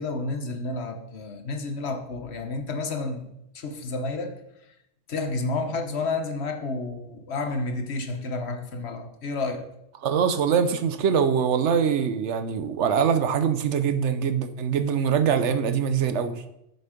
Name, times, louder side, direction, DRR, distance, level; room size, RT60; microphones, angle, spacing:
voice 1, 0.0-4.4 5.1-9.6, left 3 dB, 70° left, 6 dB, 1.3 m, -30 dB
voice 2, 10.0-16.3, right 7 dB, 85° right, 10 dB, 1.1 m, -23 dB
8.1 x 6.8 x 5.1 m, 0.80 s
omnidirectional pair, 1.2 m